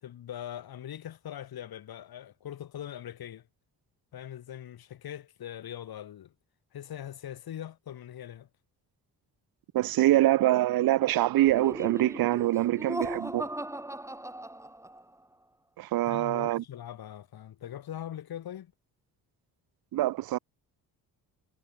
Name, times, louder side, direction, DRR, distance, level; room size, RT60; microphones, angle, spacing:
voice 1, 0.0-3.5 4.1-6.3 6.7-8.5 16.0-18.7, left 10 dB, 75° left, 6.2 m, -41 dB
voice 2, 9.7-13.5 15.8-16.6 19.9-20.4, right 15 dB, 70° right, 0.7 m, -25 dB
Laughter, 11.4-15.1, right 1 dB, 10° right, 2.2 m, -37 dB
cardioid pair, 80°, 37 cm